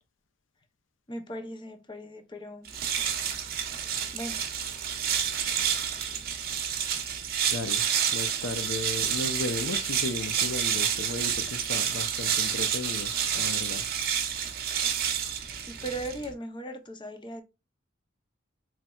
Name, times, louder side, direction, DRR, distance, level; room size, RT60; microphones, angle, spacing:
voice 1, 1.1-2.7 4.1-4.4 15.6-17.4, right 1 dB, 25° left, 0.6 m, -38 dB
sound 1, 2.6-16.3, right 8 dB, 50° right, 0.8 m, -29 dB
voice 2, 7.5-7.8 8.1-13.9, left 3 dB, 65° left, 0.5 m, -35 dB
4.2 x 3.1 x 2.2 m
head